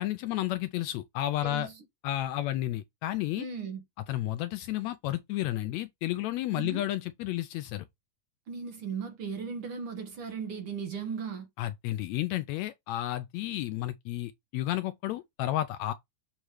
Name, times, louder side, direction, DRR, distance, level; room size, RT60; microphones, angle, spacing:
voice 1, 0.0-1.7 2.0-3.4 4.1-7.9 11.6-15.9, left 14 dB, 80° left, 1.6 m, -32 dB
voice 2, 1.4-1.7 3.4-3.8 6.5-6.8 8.5-11.5, right 6 dB, 55° right, 1.7 m, -37 dB
7.0 x 3.0 x 4.8 m
omnidirectional pair, 3.4 m